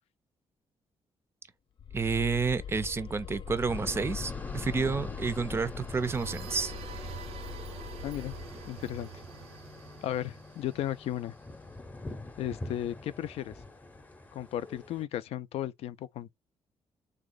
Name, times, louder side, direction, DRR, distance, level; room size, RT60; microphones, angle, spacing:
sound 1, 1.8-9.0, left 8 dB, 50° left, 0.7 m, -42 dB
voice 1, 1.9-6.7, right 5 dB, 25° right, 0.4 m, -30 dB
sound 2, 3.7-15.0, left 2 dB, 15° left, 0.7 m, -45 dB
sound 3, 5.7-11.4, right 10 dB, 85° right, 0.6 m, -46 dB
voice 2, 8.0-8.4 8.7-9.1 10.0-11.3 12.4-13.6 14.3-16.3, left 12 dB, 85° left, 0.4 m, -35 dB
3.7 x 2.9 x 3.8 m
cardioid pair, 140°, 10 cm